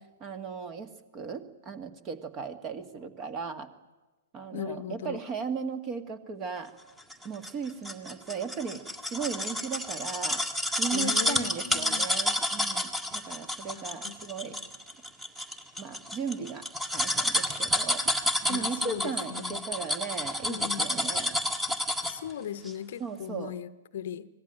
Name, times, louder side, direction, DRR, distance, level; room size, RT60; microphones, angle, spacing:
voice 1, 0.2-3.7 4.3-6.7 7.2-8.8 9.1-10.4 10.8-14.6 15.8-16.7 16.9-18.0 18.5-21.3 23.0-23.6, right 6 dB, 25° right, 11 dB, 1.9 m, -36 dB
voice 2, 4.5-5.2 10.9-12.2 13.7-14.1 14.4-14.6 18.5-19.7 20.5-20.9 22.0-24.3, left 9 dB, 50° left, 15 dB, 0.9 m, -38 dB
sound 1, 7.1-22.3 22.7-22.8, left 1 dB, 5° right, 1.9 m, -30 dB
25.0 x 18.5 x 9.2 m, 1.2 s
figure-of-eight pair, 115°, 0 cm